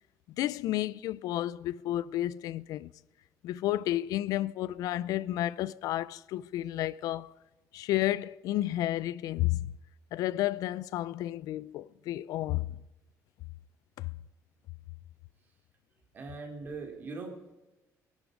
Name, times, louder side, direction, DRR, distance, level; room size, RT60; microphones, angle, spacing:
voice 1, 0.3-2.9 3.4-7.3 7.7-9.7 10.1-12.8 14.0-14.1, left 14 dB, 80° left, 0.4 m, -31 dB
voice 2, 16.1-17.6, right 3 dB, 30° right, 3.0 m, -41 dB
22.0 x 11.5 x 5.0 m
cardioid pair, 180°, 6 cm